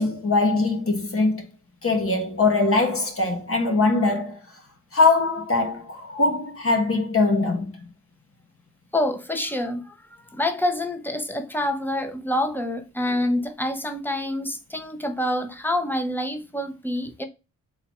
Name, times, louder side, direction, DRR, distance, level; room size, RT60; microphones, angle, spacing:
voice 1, 0.0-1.5 1.8-4.4 4.9-7.9, left 3 dB, 40° left, 1.3 m, -22 dB
voice 2, 8.9-9.9 10.3-17.2, left 1 dB, 5° left, 0.8 m, -27 dB
3.9 x 2.8 x 4.6 m
cardioid pair, 75°, 33 cm